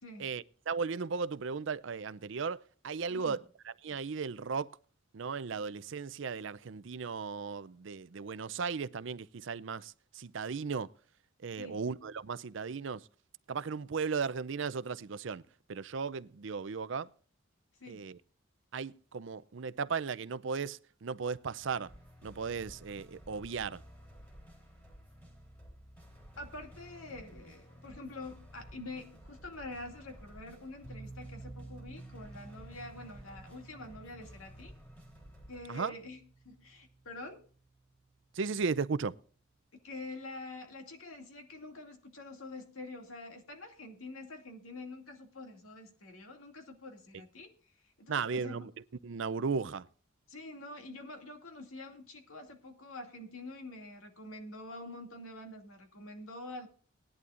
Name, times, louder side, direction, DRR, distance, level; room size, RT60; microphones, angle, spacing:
voice 1, 0.2-3.4 3.6-4.7 5.1-10.9 11.4-13.1 13.5-15.4 15.7-17.1 17.9-18.2 18.7-21.9 22.2-23.8 35.7-35.9 38.3-39.1 48.1-48.7 49.0-49.9, right 5 dB, 65° right, 0.5 m, -36 dB
sound 1, 21.6-35.6, equal, 10° left, 3.4 m, -54 dB
voice 2, 26.4-34.7 35.5-36.2 36.4-37.5 39.8-48.6 50.3-56.7, left 2 dB, 90° left, 2.4 m, -46 dB
sound 2, 30.8-39.7, right 2 dB, 65° left, 5.3 m, -53 dB
18.5 x 11.0 x 2.5 m
head